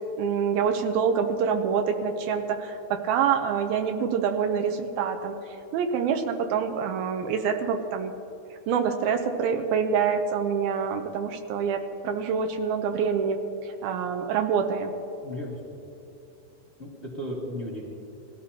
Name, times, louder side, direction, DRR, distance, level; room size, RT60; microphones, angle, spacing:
voice 1, 0.2-5.4 5.7-8.1 8.7-14.9, right 6 dB, 80° right, 5 dB, 2.3 m, -26 dB
voice 2, 15.2-15.6 16.8-17.8, left 1 dB, 35° left, -6 dB, 1.0 m, -35 dB
19.5 x 14.0 x 2.8 m, 2.8 s
omnidirectional pair, 4.7 m